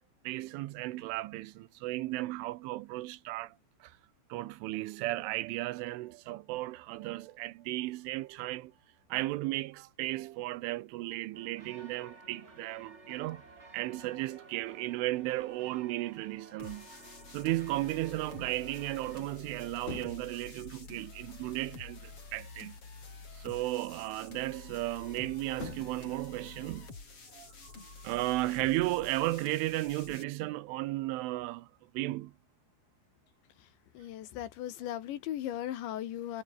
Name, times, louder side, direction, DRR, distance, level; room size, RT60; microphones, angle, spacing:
voice 1, 0.3-3.6 3.8-4.0 4.3-8.7 9.1-13.4 13.7-16.9 17.3-22.8 23.3-26.9 27.3-32.3, right 18 dB, 85° right, 3.4 m, -35 dB
sound 1, 11.3-19.3, right 2 dB, 15° right, 3.8 m, -54 dB
sound 2, 16.6-30.2, left 4 dB, 30° left, 5.4 m, -49 dB
sound 3, 19.7-20.4 22.0-22.8 25.4-26.1, left 5 dB, 50° left, 7.2 m, -45 dB
voice 2, 33.9-36.4, left 12 dB, 75° left, 3.9 m, -37 dB
omnidirectional pair, 5.5 m